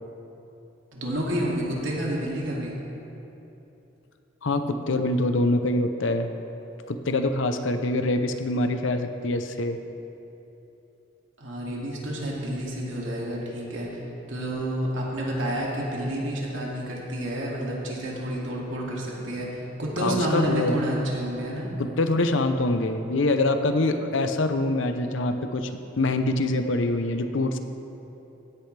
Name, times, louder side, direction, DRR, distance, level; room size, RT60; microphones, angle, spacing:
voice 1, 0.9-2.7 11.4-14.0 14.3-21.7, right 1 dB, 85° right, -4 dB, 2.4 m, -29 dB
voice 2, 4.4-6.3 6.9-9.8 20.0-20.8 21.8-25.7 26.0-27.6, left 2 dB, 75° left, 8 dB, 0.7 m, -24 dB
16.0 x 10.0 x 3.4 m, 3.0 s
head